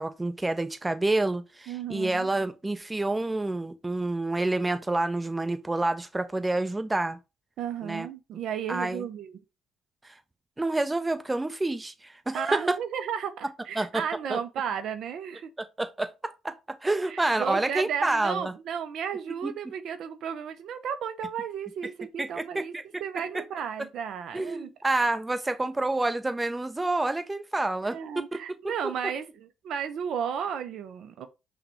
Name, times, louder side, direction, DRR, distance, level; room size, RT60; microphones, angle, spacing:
voice 1, 0.0-7.2 7.8-8.1 8.7-9.1 10.0-10.2 10.6-12.8 13.8-14.0 14.3-14.4 15.6-16.6 16.8-18.5 19.4-19.5 22.2-22.8 23.3-23.4 24.3-28.4 28.8-28.9, right 2 dB, 15° right, 0.6 m, -28 dB
voice 2, 1.7-2.3 7.6-9.4 12.3-15.5 17.1-22.7 23.0-24.7 27.8-31.3, right 8 dB, 65° right, 0.4 m, -34 dB
5.7 x 2.2 x 2.9 m
hypercardioid pair, 55°, 0 cm